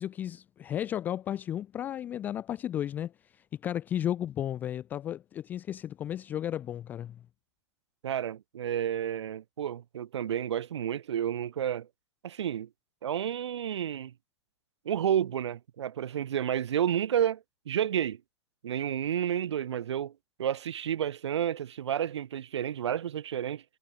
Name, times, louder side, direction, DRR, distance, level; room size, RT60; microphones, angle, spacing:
voice 1, 0.0-7.2, left 11 dB, 10° left, 0.4 m, -34 dB
voice 2, 8.0-11.9 12.2-12.7 13.0-14.1 14.8-18.2 18.6-23.6, right 10 dB, 75° right, 1.2 m, -31 dB
hypercardioid pair, 160°, 15 cm